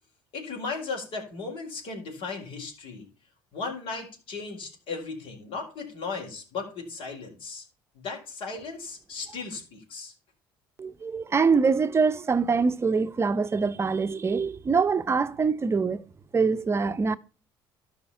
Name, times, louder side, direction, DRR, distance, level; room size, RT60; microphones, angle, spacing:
voice 1, 0.3-3.1 3.5-7.6 7.9-10.1, left 4 dB, 60° left, 4.5 m, -36 dB
voice 2, 10.8-16.0 16.3-17.2, right 5 dB, 25° right, 0.8 m, -24 dB
13.0 x 5.1 x 5.7 m
supercardioid pair, 80°, 10 cm